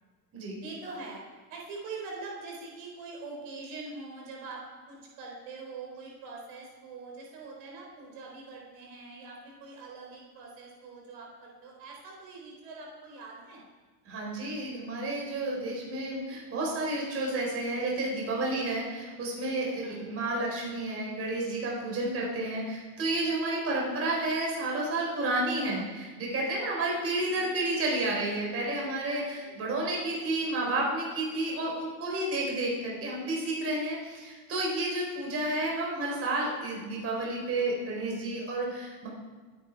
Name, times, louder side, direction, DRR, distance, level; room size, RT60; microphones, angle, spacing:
voice 1, 0.6-1.2 1.5-13.6 19.8-20.2 25.2-25.5 27.2-27.5 27.8-28.1 29.5-29.6, right 3 dB, 55° right, -1 dB, 4.3 m, -44 dB
voice 2, 14.1-39.1, right 2 dB, 30° right, -2 dB, 4.3 m, -31 dB
24.0 x 9.6 x 4.7 m, 1.3 s
supercardioid pair, 145°, 48 cm